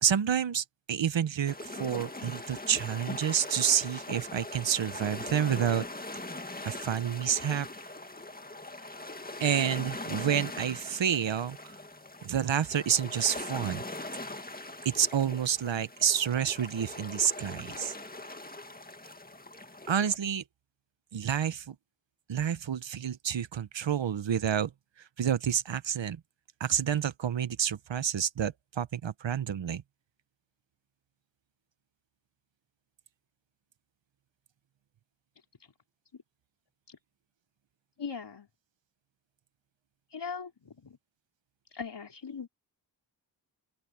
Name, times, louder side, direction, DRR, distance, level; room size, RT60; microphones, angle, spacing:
voice 1, 0.0-5.8 6.6-7.7 9.4-11.7 12.2-13.8 14.8-17.9 19.9-20.4 21.1-21.8 22.3-24.7 25.2-26.2 26.6-29.8, right 8 dB, 80° right, 1.0 m, -29 dB
sound 1, 1.5-20.2, left 2 dB, 20° left, 1.9 m, -41 dB
voice 2, 38.0-38.5 40.1-41.0 41.7-42.5, left 5 dB, 65° left, 4.7 m, -40 dB
open air
wide cardioid pair, 65°, 44 cm